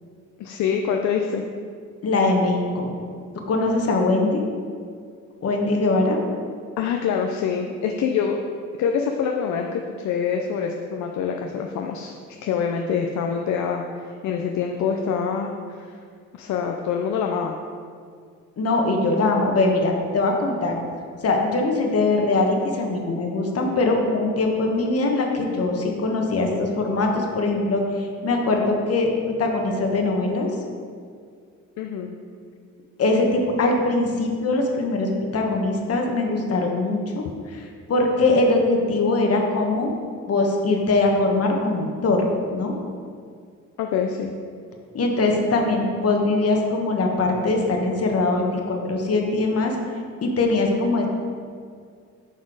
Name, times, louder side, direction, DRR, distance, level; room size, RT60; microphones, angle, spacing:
voice 1, 0.4-1.4 6.8-8.4 8.8-12.1 12.4-15.5 15.8-15.9 16.3-17.6 31.8-32.1 43.8-44.3, left 6 dB, 70° left, 3 dB, 0.6 m, -25 dB
voice 2, 2.0-2.9 3.5-4.4 5.4-6.2 18.6-20.8 21.2-30.5 33.0-39.9 40.3-42.3 42.5-42.7 44.9-49.7 50.2-51.1, left 2 dB, 50° left, 2 dB, 1.3 m, -22 dB
7.8 x 4.2 x 4.9 m, 2.1 s
cardioid pair, 90°, 30 cm